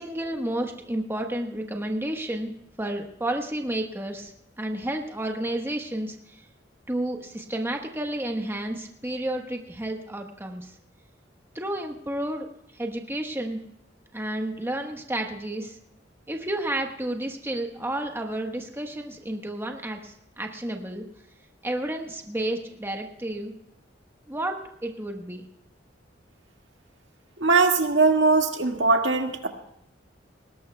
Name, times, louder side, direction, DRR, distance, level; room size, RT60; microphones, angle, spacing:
voice 1, 0.0-2.5 2.8-4.3 4.6-6.2 6.9-10.7 11.5-12.5 12.8-13.6 14.1-15.8 16.3-21.0 21.6-23.5 24.3-25.4, right 1 dB, 15° right, 2 dB, 1.2 m, -31 dB
voice 2, 27.4-29.5, right 3 dB, 75° right, 3 dB, 2.0 m, -20 dB
20.5 x 18.0 x 2.3 m, 0.76 s
head